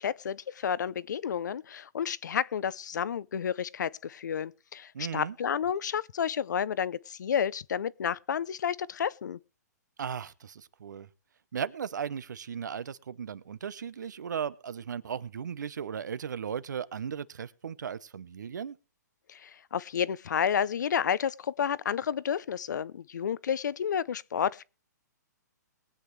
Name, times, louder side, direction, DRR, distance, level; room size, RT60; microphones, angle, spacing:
voice 1, 0.0-9.4 19.3-24.6, left 8 dB, 75° left, 0.5 m, -31 dB
voice 2, 4.9-5.3 10.0-11.1 11.5-18.8, right 7 dB, 80° right, 0.8 m, -36 dB
22.0 x 8.3 x 3.2 m
hypercardioid pair, 145°, 10 cm